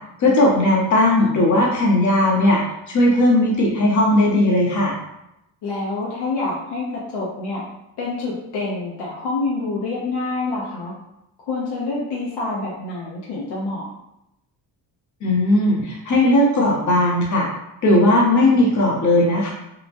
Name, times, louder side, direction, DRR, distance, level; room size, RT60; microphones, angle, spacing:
voice 1, 0.2-2.6 2.9-4.9 15.2-17.5 17.8-19.5, left 1 dB, 45° left, -3 dB, 1.0 m, -17 dB
voice 2, 5.6-7.6 8.0-10.9 11.5-13.9, left 3 dB, 70° left, -5 dB, 0.8 m, -27 dB
2.9 x 2.1 x 2.6 m, 0.85 s
cardioid pair, 80°, 41 cm